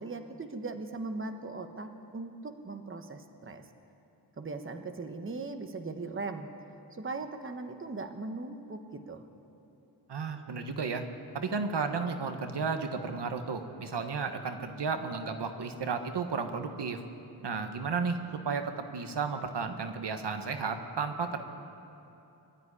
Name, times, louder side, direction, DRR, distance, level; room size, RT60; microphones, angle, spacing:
voice 1, 0.0-3.6 4.4-6.5 6.9-9.2, right 3 dB, 30° right, 6 dB, 1.1 m, -39 dB
voice 2, 10.1-11.0 11.3-17.0 17.4-18.2 18.4-18.6 18.9-21.4, right 5 dB, 75° right, 6 dB, 1.4 m, -33 dB
23.0 x 13.0 x 9.9 m, 2.9 s
wide cardioid pair, 135°, 41 cm